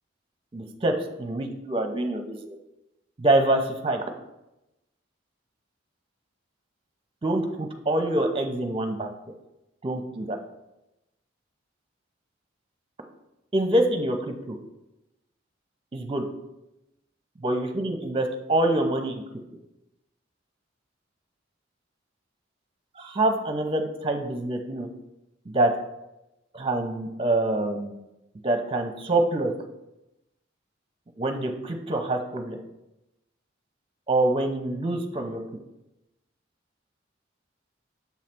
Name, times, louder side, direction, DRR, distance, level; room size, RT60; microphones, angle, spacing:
voice 1, 0.5-2.6 3.2-4.0 7.2-9.1 9.8-10.4 13.5-14.6 15.9-16.2 17.4-19.2 23.0-24.9 25.5-25.7 26.5-28.0 28.4-29.5 31.2-32.6 34.1-35.4, right 1 dB, 30° right, 5 dB, 0.7 m, -25 dB
7.1 x 3.2 x 5.9 m, 0.93 s
head